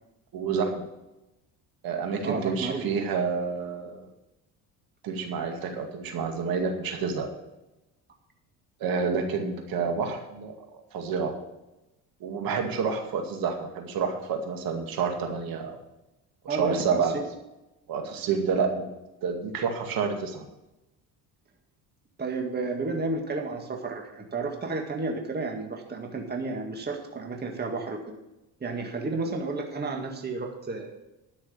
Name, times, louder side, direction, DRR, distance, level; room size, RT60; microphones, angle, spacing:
voice 1, 0.3-0.8 1.8-4.1 5.0-7.3 8.8-10.5 10.9-11.4 12.2-15.8 16.4-17.2 17.9-18.8 19.2-20.4, right 5 dB, 65° right, 4 dB, 2.2 m, -29 dB
voice 2, 2.2-2.9 16.5-17.2 22.2-28.2 28.6-30.9, right 3 dB, 25° right, 2 dB, 1.9 m, -32 dB
12.0 x 6.3 x 7.5 m, 0.95 s
cardioid pair, 105°, 38 cm